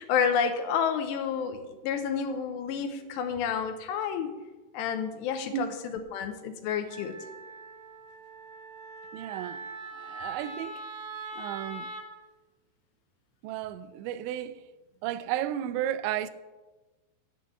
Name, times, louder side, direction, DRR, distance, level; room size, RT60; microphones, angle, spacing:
voice 1, 0.0-4.3 4.7-5.7 6.1-7.2, left 7 dB, 80° left, 2.9 m, -29 dB
Wind instrument woodwind instrument, 6.9-12.1, right 3 dB, 55° right, 2.9 m, -42 dB
voice 2, 9.1-9.6 9.9-10.8 11.4-11.9 13.4-14.6 15.0-16.3, right 11 dB, 85° right, 2.9 m, -33 dB
8.0 x 7.7 x 8.5 m
omnidirectional pair, 5.2 m